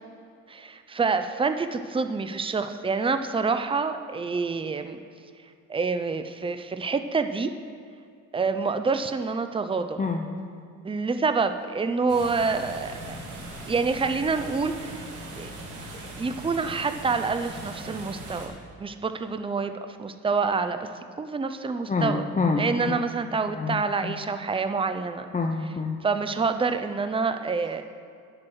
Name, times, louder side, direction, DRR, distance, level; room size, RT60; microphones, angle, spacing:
voice 1, 0.5-5.0 5.7-7.5 8.3-10.0 10.8-13.2 13.7-15.0 15.4-15.5 15.9-18.5 18.8-20.9 21.2-22.2 22.6-25.3 26.0-27.8, right 4 dB, 20° right, 9 dB, 0.6 m, -27 dB
sound 1, 12.1-18.5, right 1 dB, 80° right, 2.5 m, -39 dB
voice 2, 21.9-23.0 23.5-23.8 24.0-24.1 25.3-26.0, left 4 dB, 25° left, 3 dB, 0.8 m, -26 dB
9.5 x 7.7 x 6.3 m, 2.4 s
cardioid pair, 90°, 30 cm